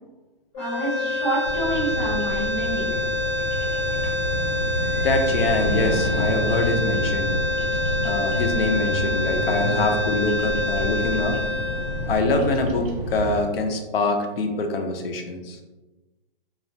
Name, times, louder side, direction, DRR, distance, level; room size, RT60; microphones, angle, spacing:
sound 1, 0.5-12.8, left 3 dB, 30° left, 0.7 m, -27 dB
voice 1, 0.6-2.8, right 2 dB, ahead, -16 dB, 0.5 m, -27 dB
sound 2, 1.0-6.6, right 2 dB, 55° right, 0.6 m, -40 dB
Bird vocalization bird call bird song, 1.4-13.5, equal, 85° right, 0.8 m, -29 dB
voice 2, 5.0-7.4 8.0-11.4 12.1-15.6, left 2 dB, 80° left, 4 dB, 0.5 m, -24 dB
2.3 x 2.0 x 2.6 m, 1.1 s
hypercardioid pair, 170°, 29 cm